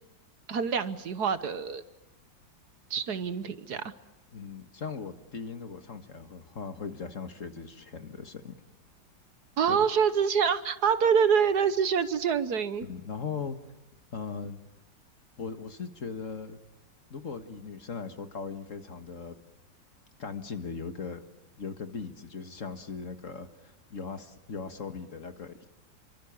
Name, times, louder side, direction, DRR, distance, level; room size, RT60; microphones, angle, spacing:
voice 1, 0.5-1.8 2.9-3.9 9.6-12.9, right 7 dB, 60° right, 13 dB, 1.6 m, -26 dB
voice 2, 4.3-8.6 9.7-9.8 12.8-13.7 14.1-14.6 15.4-16.6 17.1-19.4 20.2-21.2 21.6-25.7, left 5 dB, 45° left, 8 dB, 1.9 m, -39 dB
29.0 x 24.0 x 7.2 m, 1.0 s
omnidirectional pair, 2.0 m